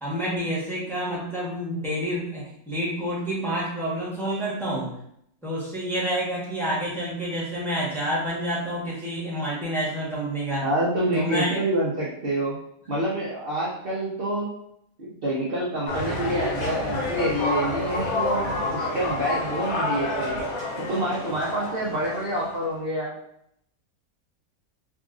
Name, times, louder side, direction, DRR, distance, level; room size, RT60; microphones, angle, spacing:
voice 1, 0.0-4.9 5.4-10.6 11.1-11.6, equal, ahead, -7 dB, 1.2 m, -28 dB
voice 2, 10.6-12.6 12.9-14.5 15.0-20.4 20.8-23.1, right 1 dB, 45° right, -6 dB, 0.9 m, -27 dB
sound 1, 15.9-22.7, left 2 dB, 70° left, 1.3 m, -29 dB
4.8 x 2.5 x 2.5 m, 0.72 s
omnidirectional pair, 1.6 m